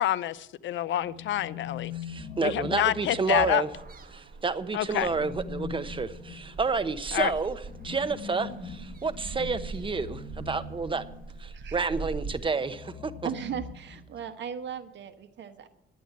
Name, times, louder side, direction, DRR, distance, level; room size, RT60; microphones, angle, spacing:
voice 1, 0.0-1.9 2.4-3.6 4.7-5.1 7.1-7.3, left 12 dB, 70° left, 16 dB, 0.6 m, -27 dB
sound 1, 0.9-4.2 4.9-11.5 12.5-14.4, left 5 dB, 25° left, 2.9 m, -42 dB
voice 2, 2.0-3.7 4.1-11.0 11.4-13.1, right 4 dB, 25° right, 12 dB, 0.9 m, -30 dB
sound 2, 3.7-12.4, right 4 dB, 45° right, 1.3 m, -43 dB
voice 3, 11.5-11.8 13.2-15.7, right 8 dB, 65° right, 10 dB, 1.3 m, -37 dB
11.0 x 8.4 x 9.3 m, 0.81 s
cardioid pair, 90°, 20 cm